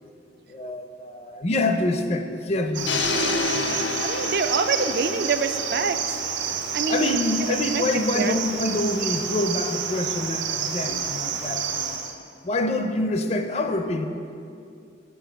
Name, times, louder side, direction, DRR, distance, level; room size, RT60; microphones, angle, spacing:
voice 1, 0.5-3.1 3.5-3.9 6.4-6.6 6.9-12.0 12.4-14.1, left 2 dB, 35° left, 7 dB, 0.5 m, -26 dB
Cricket, 2.7-12.1, right 6 dB, 85° right, 0.7 m, -29 dB
sound 1, 2.9-6.9, left 4 dB, 80° left, 0.6 m, -29 dB
voice 2, 4.0-6.2 6.7-7.2 7.7-7.8 8.1-8.4, right 5 dB, 55° right, 9 dB, 0.3 m, -26 dB
7.9 x 7.0 x 5.7 m, 2.5 s
head